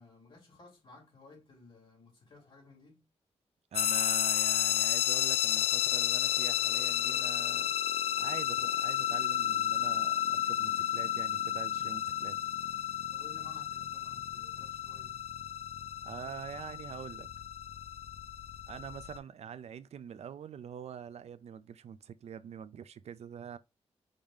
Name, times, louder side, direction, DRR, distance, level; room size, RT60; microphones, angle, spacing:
voice 1, 0.0-3.0 13.1-15.2, left 3 dB, 50° left, 2.7 m, -56 dB
sound 1, 3.7-19.2, left 10 dB, 65° left, 0.4 m, -32 dB
voice 2, 3.7-7.7 8.2-12.4 16.0-17.3 18.7-23.6, right 8 dB, 75° right, 0.4 m, -45 dB
5.0 x 2.7 x 3.5 m
wide cardioid pair, 175°, 11 cm